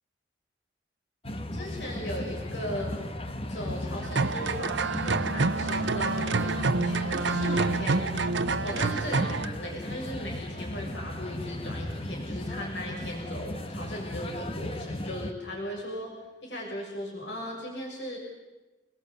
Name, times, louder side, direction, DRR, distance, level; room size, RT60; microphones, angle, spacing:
sound 1, 1.2-15.3, left 1 dB, 30° left, 1.5 m, -36 dB
voice 1, 1.5-3.0 3.5-8.1 8.6-16.1 16.4-18.2, equal, 80° left, -1 dB, 6.5 m, -37 dB
sound 2, 4.0-9.5, right 3 dB, 85° right, 0.9 m, -27 dB
29.0 x 20.0 x 8.2 m, 1.1 s
head